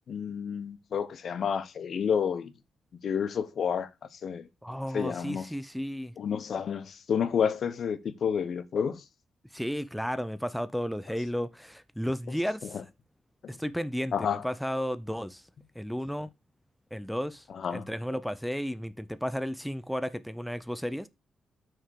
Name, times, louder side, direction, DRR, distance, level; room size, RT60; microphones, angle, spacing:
voice 1, 0.1-2.5 3.0-3.9 4.2-4.4 4.9-5.5 6.2-9.0 12.3-12.8 14.1-14.5 17.5-17.8, left 7 dB, 65° left, 0.9 m, -30 dB
voice 2, 4.6-6.1 9.5-12.8 13.5-15.4 15.8-16.3 16.9-17.4 17.7-21.1, equal, ahead, 0.6 m, -33 dB
6.4 x 4.5 x 6.4 m
cardioid pair, 70°, 0 cm